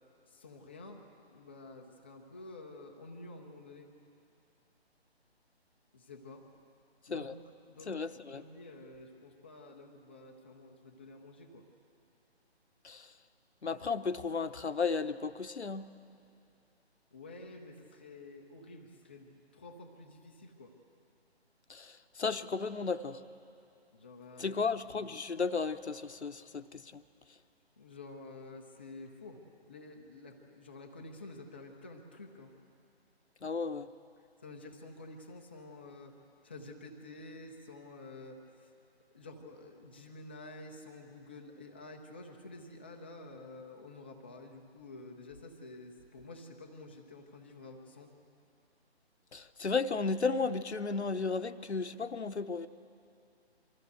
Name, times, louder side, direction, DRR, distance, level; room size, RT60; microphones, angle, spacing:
voice 1, 0.3-3.9 5.9-6.4 7.1-7.4 7.7-11.7 17.1-20.7 23.9-24.6 27.8-29.4 29.7-32.5 34.4-36.1 36.4-38.7 39.1-48.1, left 2 dB, 10° left, 1 dB, 0.5 m, -50 dB
voice 2, 7.9-8.4 12.8-13.1 13.6-15.9 21.7-23.2 24.4-27.0 33.4-33.9 49.3-52.7, left 4 dB, 80° left, 12 dB, 0.9 m, -34 dB
24.0 x 14.5 x 7.9 m, 2.6 s
figure-of-eight pair, 150°, 33 cm